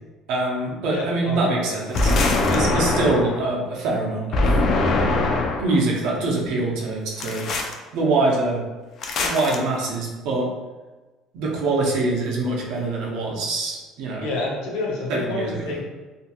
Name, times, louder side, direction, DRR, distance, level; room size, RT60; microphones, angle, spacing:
voice 1, 0.3-2.1 2.5-4.6 5.6-7.5 7.9-8.6 9.2-10.5 11.3-14.3 15.1-15.7, right 2 dB, 65° right, -2 dB, 0.6 m, -24 dB
voice 2, 0.9-1.8 14.2-15.8, left 2 dB, 85° left, -3 dB, 0.7 m, -29 dB
sound 1, 1.9-3.4 4.3-5.8 7.2-7.7 9.0-9.6, left 2 dB, 40° left, 0.3 m, -22 dB
2.7 x 2.5 x 2.3 m, 1.2 s
cardioid pair, 165°, 0 cm